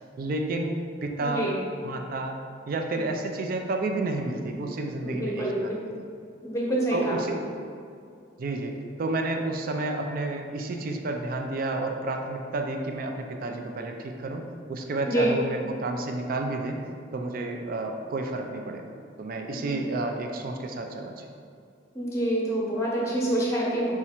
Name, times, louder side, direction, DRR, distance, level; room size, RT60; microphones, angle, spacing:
voice 1, 0.2-0.7 1.0-1.5 1.8-2.3 2.7-5.7 6.9-7.4 8.4-16.8 17.1-18.8 19.2-21.3, right 2 dB, 50° right, 3 dB, 0.4 m, -30 dB
voice 2, 1.2-1.6 2.9-3.0 5.0-5.7 6.4-7.2 15.1-15.3 19.5-19.8 21.9-23.9, right 1 dB, 15° left, -4 dB, 0.8 m, -27 dB
4.2 x 2.4 x 4.3 m, 2.3 s
head